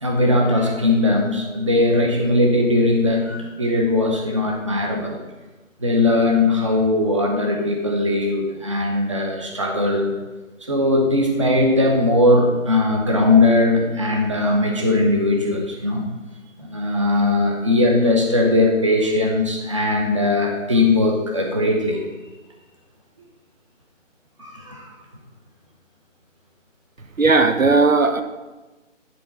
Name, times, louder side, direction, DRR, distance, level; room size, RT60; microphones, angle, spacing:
voice 1, 0.0-5.2 5.8-10.1 10.6-16.1 16.6-22.0 24.4-24.9, left 2 dB, 25° right, 1 dB, 0.9 m, -19 dB
voice 2, 27.2-28.2, right 3 dB, 90° right, 8 dB, 1.1 m, -16 dB
10.5 x 3.8 x 5.8 m, 1.2 s
figure-of-eight pair, 165°, 39 cm